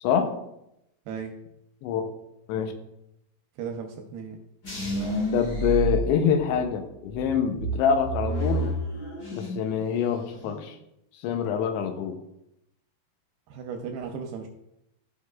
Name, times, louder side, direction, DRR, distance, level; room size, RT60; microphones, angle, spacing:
voice 1, 0.0-0.4 1.8-2.0 2.5-2.7 5.3-8.7 9.3-10.8 11.1-12.2, left 7 dB, 85° left, 6 dB, 2.8 m, -25 dB
voice 2, 3.6-4.4 13.5-14.5, right 6 dB, 80° right, 4 dB, 2.2 m, -35 dB
sound 1, 4.6-6.7 7.1-9.7 10.0-10.6, right 2 dB, 50° left, 1.1 m, -30 dB
13.5 x 4.9 x 2.4 m, 0.83 s
omnidirectional pair, 4.9 m